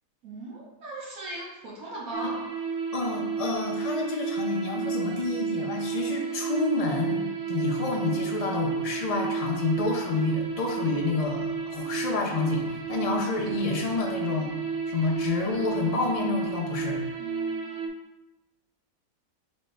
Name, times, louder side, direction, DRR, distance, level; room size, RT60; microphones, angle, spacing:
voice 1, 0.2-2.4 17.2-17.9, right 1 dB, 70° right, -5 dB, 1.7 m, -38 dB
sound 1, 2.1-17.9, right 5 dB, 85° right, 0.5 m, -32 dB
voice 2, 2.9-14.5 14.9-17.0, left 3 dB, 60° left, -1 dB, 0.4 m, -29 dB
4.2 x 3.8 x 3.3 m, 1.0 s
omnidirectional pair, 1.6 m